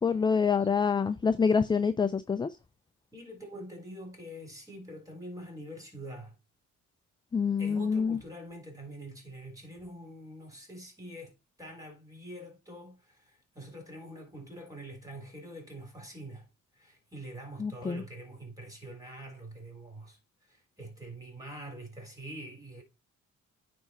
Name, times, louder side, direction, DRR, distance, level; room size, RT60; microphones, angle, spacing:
voice 1, 0.0-2.5 7.3-8.2 17.6-18.0, left 5 dB, 15° left, 0.4 m, -26 dB
voice 2, 3.1-6.4 7.6-16.5 16.7-22.8, right 1 dB, 10° right, 3.6 m, -45 dB
9.6 x 3.4 x 4.2 m
cardioid pair, 90°, 30 cm